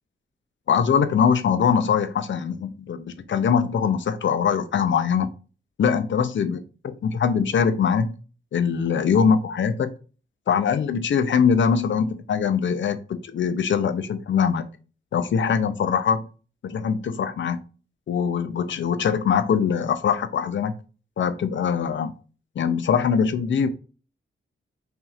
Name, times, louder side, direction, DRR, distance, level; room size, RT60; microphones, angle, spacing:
voice 1, 0.7-5.3 5.8-6.6 7.0-8.1 8.5-9.9 10.5-14.7 15.1-16.3 16.6-17.6 18.1-20.7 21.2-22.1 22.6-23.7, left 7 dB, 65° left, 10 dB, 0.5 m, -22 dB
5.6 x 2.8 x 2.4 m, 0.35 s
wide cardioid pair, 165°, 21 cm